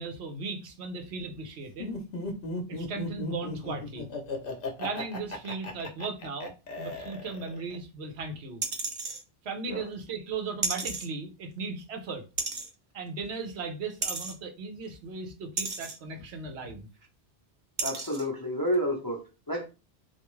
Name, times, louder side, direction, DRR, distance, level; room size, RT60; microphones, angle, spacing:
voice 1, 0.0-1.9 2.7-4.1 4.8-8.6 9.4-12.2 12.9-16.9, right 4 dB, 75° right, 1.0 m, -37 dB
Laughter, 1.8-7.8, left 2 dB, 60° left, 0.9 m, -36 dB
sound 1, 8.6-9.2 10.6-11.1 12.4-12.7 14.0-14.3 15.6-16.0 17.0-17.1 17.8-18.2 18.7-18.8, right 4 dB, 50° right, 0.7 m, -32 dB
voice 2, 17.8-19.7, equal, 25° left, 0.6 m, -30 dB
3.4 x 2.5 x 3.0 m
omnidirectional pair, 1.1 m